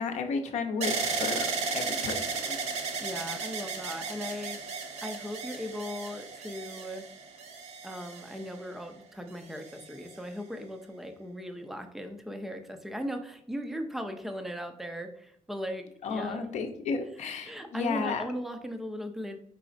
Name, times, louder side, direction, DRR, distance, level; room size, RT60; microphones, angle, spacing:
voice 1, 0.0-2.6 16.0-18.2, left 4 dB, 65° left, 5 dB, 0.7 m, -33 dB
sound 1, 0.8-8.8 9.5-10.2, right 4 dB, 60° right, 0.7 m, -35 dB
voice 2, 3.0-7.1 7.8-16.5 17.4-19.4, equal, ahead, 6 dB, 0.4 m, -38 dB
4.9 x 4.0 x 2.5 m, 0.70 s
cardioid pair, 160°, 13 cm